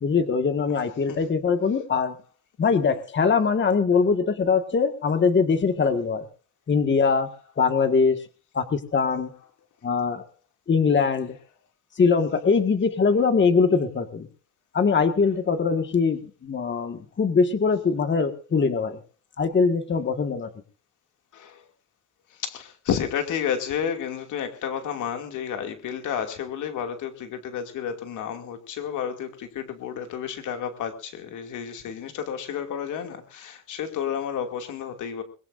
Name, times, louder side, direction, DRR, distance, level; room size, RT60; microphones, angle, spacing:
voice 1, 0.0-2.2 2.6-6.3 6.7-7.3 7.6-8.2 8.5-9.3 9.8-10.2 10.7-11.4 12.0-14.3 14.7-19.0 19.4-20.5, left 5 dB, 40° left, 7 dB, 1.8 m, -22 dB
voice 2, 21.3-21.7 22.4-35.2, left 8 dB, 80° left, 5 dB, 2.5 m, -31 dB
22.0 x 21.5 x 2.6 m, 0.37 s
cardioid pair, 90°, 30 cm